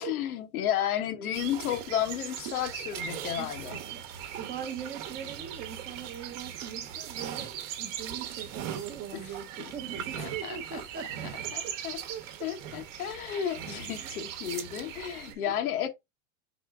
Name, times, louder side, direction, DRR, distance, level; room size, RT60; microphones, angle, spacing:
voice 1, 0.0-3.8 9.1-9.2 9.6-9.7 10.2-10.8 11.5-12.0 12.4-15.9, left 10 dB, 85° left, 1.1 m, -32 dB
sound 1, 1.3-15.3, right 9 dB, 60° right, 1.0 m, -39 dB
voice 2, 3.4-4.0 4.4-11.7 12.1-12.5 14.0-14.1 15.2-15.4, right 8 dB, 20° right, 0.6 m, -41 dB
4.6 x 4.2 x 2.3 m
supercardioid pair, 145°, 43 cm